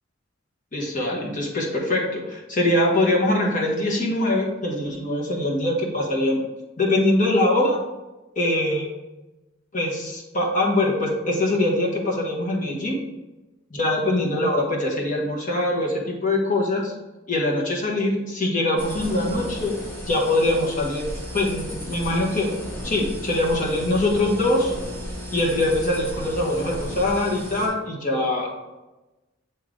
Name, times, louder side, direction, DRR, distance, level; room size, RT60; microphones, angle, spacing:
voice 1, 0.7-6.4 6.8-7.8 8.3-8.9 9.7-13.0 13.7-16.9 17.3-19.8 20.1-21.1 21.3-22.5 22.8-24.7 25.3-28.5, left 1 dB, 45° left, -3 dB, 1.5 m, -23 dB
sound 1, 18.8-27.7, equal, 10° left, 1.8 m, -35 dB
7.4 x 3.8 x 3.8 m, 1.1 s
head